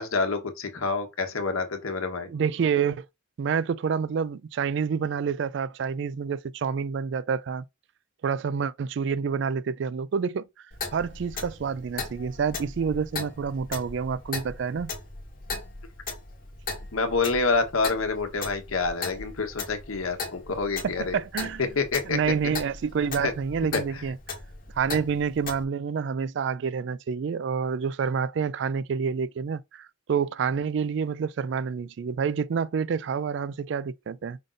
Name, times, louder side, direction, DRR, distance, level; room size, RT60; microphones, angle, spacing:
voice 1, 0.0-2.3 16.9-21.2 21.6-22.5 23.2-23.3 23.7-24.0, left 4 dB, 90° left, 1.0 m, -27 dB
voice 2, 2.3-3.1 3.4-7.6 8.2-10.5 10.9-14.9 20.8-21.6 22.1-24.2 24.7-34.4, right 6 dB, 60° right, 0.3 m, -28 dB
Clock, 10.7-25.6, left 3 dB, 45° left, 1.1 m, -38 dB
5.2 x 2.5 x 3.9 m
head